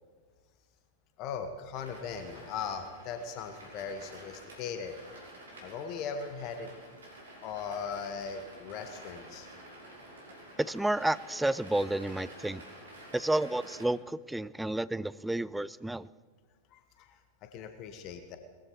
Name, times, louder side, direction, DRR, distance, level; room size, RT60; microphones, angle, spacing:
voice 1, 1.2-5.0 5.6-6.7 7.4-9.5 16.7-18.4, left 6 dB, 40° left, 8 dB, 1.3 m, -39 dB
sound 1, 1.7-13.8, right 1 dB, 70° right, 4.5 m, -50 dB
voice 2, 10.6-12.6 13.1-16.1, right 1 dB, 5° right, 18 dB, 0.4 m, -31 dB
20.0 x 14.5 x 4.6 m, 1.6 s
figure-of-eight pair, 90°, 0 cm